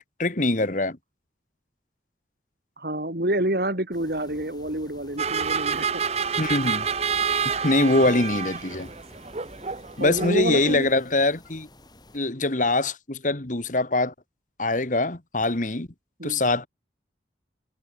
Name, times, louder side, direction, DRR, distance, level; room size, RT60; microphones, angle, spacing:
voice 1, 0.2-1.0 6.4-6.9 7.5-8.9 10.0-11.7 12.1-14.1 14.6-15.9 16.2-16.7, left 2 dB, 45° left, 1.7 m, -23 dB
voice 2, 2.8-6.0 10.0-10.9 16.2-16.4, right 1 dB, 55° right, 3.8 m, -28 dB
sound 1, 3.9-12.2, left 1 dB, 25° left, 5.7 m, -51 dB
sound 2, 5.2-10.8, right 6 dB, 35° right, 1.0 m, -28 dB
head